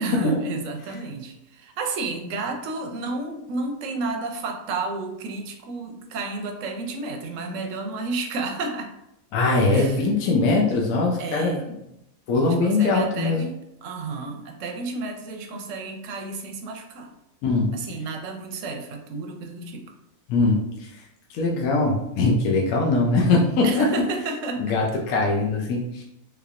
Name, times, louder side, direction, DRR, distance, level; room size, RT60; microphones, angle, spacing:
voice 1, 0.0-8.9 9.7-10.0 11.2-11.7 12.4-17.1 17.7-20.0 23.6-24.8, right 3 dB, 65° right, 4 dB, 0.8 m, -31 dB
voice 2, 9.3-11.6 12.3-13.4 17.4-17.8 20.3-20.9 21.3-23.9 24.6-26.0, left 3 dB, 75° left, -1 dB, 1.0 m, -21 dB
3.3 x 3.3 x 2.4 m, 0.84 s
omnidirectional pair, 1.6 m